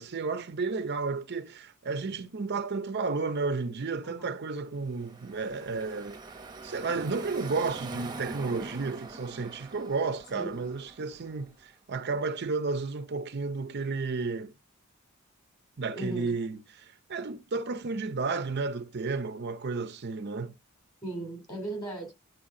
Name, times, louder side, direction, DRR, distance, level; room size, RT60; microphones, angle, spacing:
voice 1, 0.0-6.2 6.6-14.5 15.8-20.5, right 4 dB, 50° right, 0.6 m, -32 dB
voice 2, 4.0-4.4 10.3-10.7 15.9-16.3 21.0-22.1, right 2 dB, 20° left, 2.8 m, -37 dB
Car passing by / Traffic noise roadway noise, 4.7-11.6, right 3 dB, 20° right, 0.9 m, -44 dB
10.5 x 4.6 x 3.7 m
head